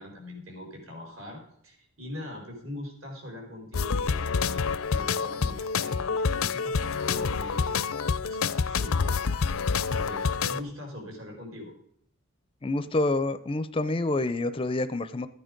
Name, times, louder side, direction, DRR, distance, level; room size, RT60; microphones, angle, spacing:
voice 1, 0.0-9.4 9.9-11.7, left 1 dB, 70° right, 1 dB, 4.8 m, -42 dB
sound 1, 3.7-10.6, left 5 dB, 75° left, 0.6 m, -27 dB
voice 2, 12.6-15.3, left 2 dB, 25° left, 13 dB, 0.5 m, -27 dB
13.5 x 8.9 x 5.2 m, 0.70 s
head